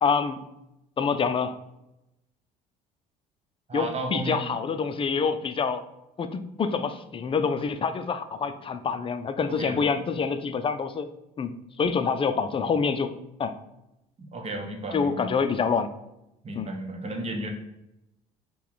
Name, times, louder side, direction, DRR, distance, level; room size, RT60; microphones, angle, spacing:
voice 1, 0.0-0.4 1.0-1.5 3.7-5.8 6.2-11.1 11.4-13.1 13.4-13.5 14.9-15.9 16.6-16.7, left 5 dB, 25° left, 10 dB, 0.5 m, -26 dB
voice 2, 3.7-4.6 9.5-9.9 14.2-15.3 16.4-17.5, right 2 dB, 30° right, 4 dB, 0.9 m, -34 dB
5.5 x 2.3 x 4.0 m, 0.88 s
hypercardioid pair, 60°, 20 cm